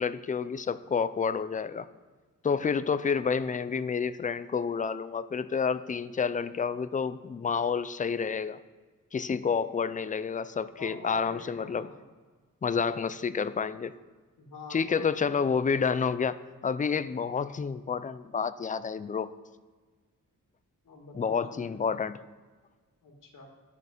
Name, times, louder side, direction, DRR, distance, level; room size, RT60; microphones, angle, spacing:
voice 1, 0.0-1.9 2.4-8.6 9.1-11.9 12.6-13.9 14.7-19.3 21.1-22.2, left 6 dB, 25° left, 14 dB, 0.3 m, -29 dB
voice 2, 3.0-3.7 10.8-12.0 14.4-15.4 20.8-21.9 23.0-23.5, left 3 dB, 70° left, 1 dB, 1.9 m, -46 dB
10.5 x 6.5 x 5.1 m, 1.4 s
wide cardioid pair, 110°, 33 cm